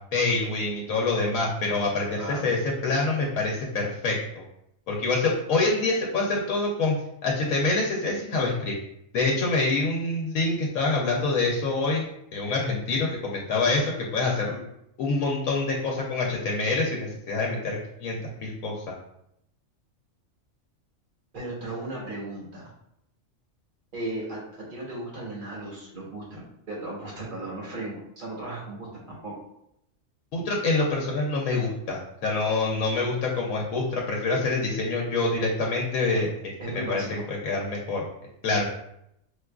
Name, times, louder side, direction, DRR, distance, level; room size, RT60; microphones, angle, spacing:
voice 1, 0.1-4.4 4.9-7.0 7.2-8.7 9.1-14.6 15.0-18.8 30.3-36.3 36.9-38.1 38.4-38.7, left 3 dB, 85° left, -2 dB, 1.0 m, -26 dB
voice 2, 2.1-2.6 21.3-22.7 23.9-29.3 36.1-36.2 36.6-37.3, right 2 dB, 40° right, -4 dB, 1.1 m, -36 dB
4.6 x 2.3 x 2.3 m, 0.78 s
omnidirectional pair, 1.4 m